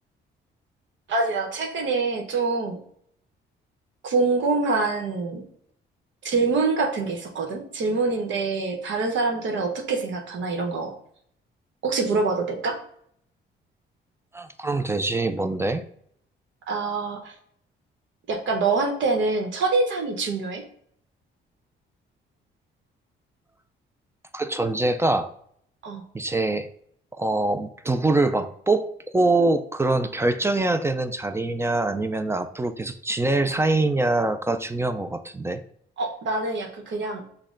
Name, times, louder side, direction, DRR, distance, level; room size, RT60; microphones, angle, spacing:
voice 1, 1.1-2.8 4.0-5.4 6.2-10.9 11.8-12.8 16.7-17.3 18.3-20.6 25.8-26.0 36.0-37.3, right 3 dB, 70° right, 2 dB, 1.1 m, -25 dB
voice 2, 14.3-15.9 24.3-25.3 26.1-26.7 27.2-35.6, right 2 dB, 15° right, 9 dB, 0.4 m, -24 dB
6.1 x 2.2 x 3.7 m, 0.66 s
cardioid pair, 90°, 20 cm